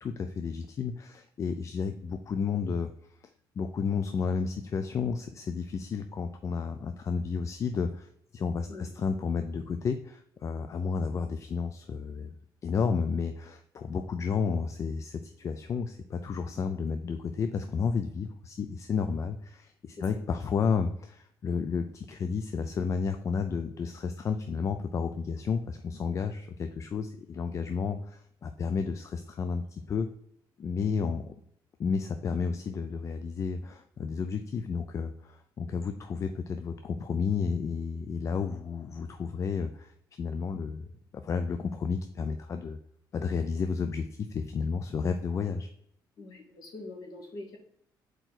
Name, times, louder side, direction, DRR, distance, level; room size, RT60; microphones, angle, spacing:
voice 1, 0.0-3.1 3.6-12.4 12.6-30.1 30.6-31.2 31.8-42.8 43.1-45.7, left 5 dB, 40° left, 7 dB, 0.4 m, -32 dB
voice 2, 46.2-47.6, left 2 dB, 55° left, -1 dB, 2.0 m, -44 dB
4.6 x 4.5 x 5.9 m, 0.69 s
cardioid pair, 145°, 8 cm